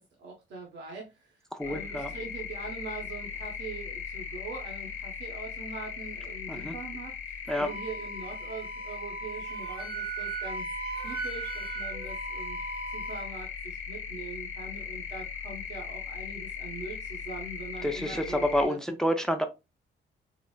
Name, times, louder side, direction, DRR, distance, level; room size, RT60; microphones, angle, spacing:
voice 1, 0.0-1.4 1.6-10.7 11.0-18.8, right 3 dB, 65° right, 1.0 m, -42 dB
voice 2, 1.5-2.1 6.5-6.8 7.5-7.7 17.8-19.5, equal, 5° left, 0.5 m, -28 dB
sound 1, 1.6-18.7, left 7 dB, 85° left, 0.8 m, -39 dB
Wind instrument woodwind instrument, 7.5-13.3, right 4 dB, 30° right, 0.8 m, -38 dB
3.9 x 2.0 x 2.2 m
cardioid pair, 90°, 20 cm